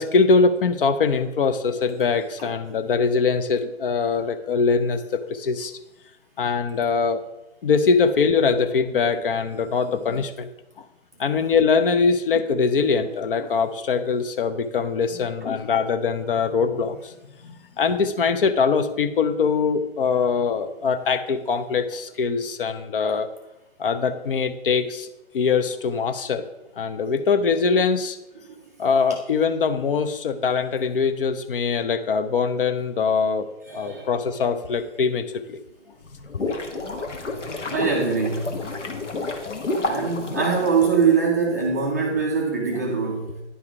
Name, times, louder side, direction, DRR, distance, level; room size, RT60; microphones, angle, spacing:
voice 1, 0.0-5.8 6.4-7.2 7.6-10.5 10.8-10.9 11.2-17.1 17.4-23.3 23.8-26.4 26.8-28.2 28.8-33.5 33.7-35.6, left 5 dB, 50° left, 9 dB, 0.6 m, -22 dB
voice 2, 33.7-34.1 37.7-38.6 39.8-43.4, right 5 dB, 15° right, -1 dB, 0.4 m, -23 dB
sound 1, 36.0-41.4, left 2 dB, 90° left, 1.1 m, -30 dB
9.9 x 3.5 x 4.4 m, 0.94 s
figure-of-eight pair, 130°, 35 cm